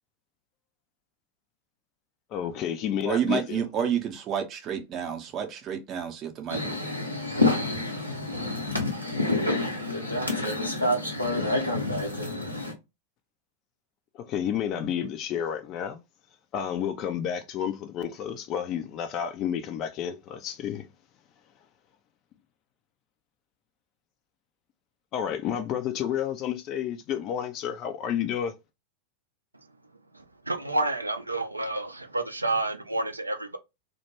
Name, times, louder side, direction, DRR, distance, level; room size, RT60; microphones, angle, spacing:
voice 1, 2.3-3.6 14.1-16.0 16.5-20.9 25.1-28.5, left 9 dB, 35° left, 0.3 m, -30 dB
voice 2, 3.0-6.8, right 8 dB, 30° right, 0.5 m, -30 dB
sound 1, 6.5-12.7, left 2 dB, 90° left, 0.7 m, -27 dB
voice 3, 30.1-33.6, right 2 dB, 85° right, 0.4 m, -29 dB
2.2 x 2.1 x 2.9 m
figure-of-eight pair, 90°, 0 cm